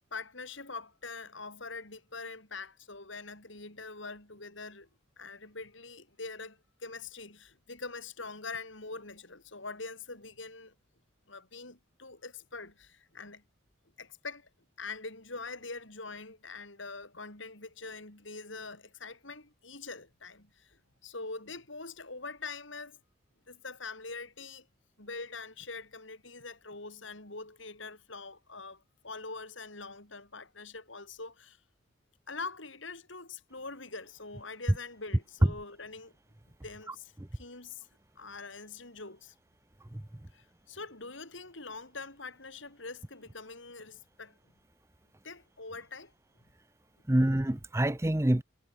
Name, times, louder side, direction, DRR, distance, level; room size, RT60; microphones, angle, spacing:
voice 1, 0.1-4.9 5.2-10.7 11.3-13.4 14.0-14.5 14.8-23.0 23.5-24.7 25.0-31.6 32.3-36.1 36.6-37.9 38.2-39.3 40.3-44.4 45.2-46.1, left 3 dB, 75° left, 5.8 m, -44 dB
voice 2, 36.9-37.3 39.9-40.0 47.1-48.4, right 1 dB, 15° right, 0.6 m, -27 dB
head